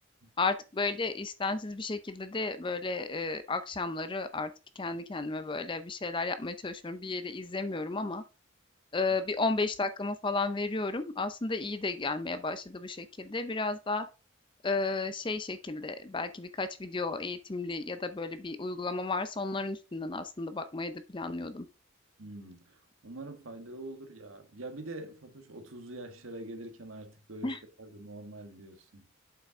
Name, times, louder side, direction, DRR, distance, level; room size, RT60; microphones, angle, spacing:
voice 1, 0.4-4.5 4.8-8.2 8.9-14.1 14.6-21.7 27.4-27.6, left 3 dB, 25° left, 0.5 m, -33 dB
voice 2, 22.2-29.0, right 2 dB, 75° right, 1.4 m, -44 dB
7.7 x 5.8 x 3.6 m
head